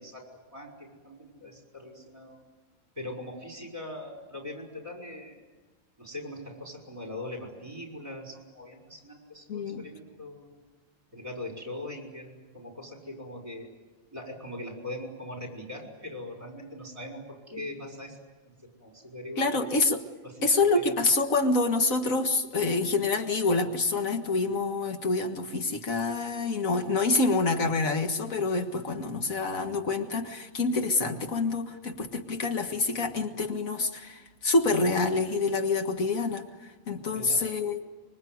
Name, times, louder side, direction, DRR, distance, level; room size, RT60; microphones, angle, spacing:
voice 1, 0.0-2.4 3.0-5.4 6.0-10.5 11.1-13.7 14.1-18.2 18.5-19.6 20.2-21.0 37.1-37.5, left 1 dB, 25° right, 2 dB, 5.7 m, -41 dB
voice 2, 9.5-9.9 19.4-20.0 20.4-37.8, left 3 dB, 90° left, 5 dB, 2.1 m, -27 dB
25.0 x 23.5 x 9.5 m, 1.2 s
omnidirectional pair, 1.4 m